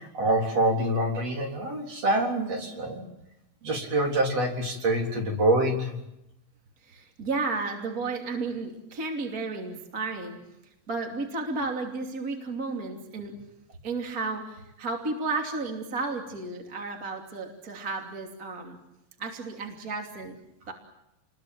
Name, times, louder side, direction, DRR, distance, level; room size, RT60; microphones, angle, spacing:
voice 1, 0.0-3.0 3.6-6.0, right 1 dB, 45° right, 0 dB, 4.8 m, -26 dB
voice 2, 6.9-10.4 10.9-13.3 13.8-18.8 19.2-20.4 20.7-20.8, right 3 dB, 25° right, 1 dB, 3.0 m, -33 dB
29.0 x 22.0 x 7.6 m, 0.86 s
omnidirectional pair, 4.0 m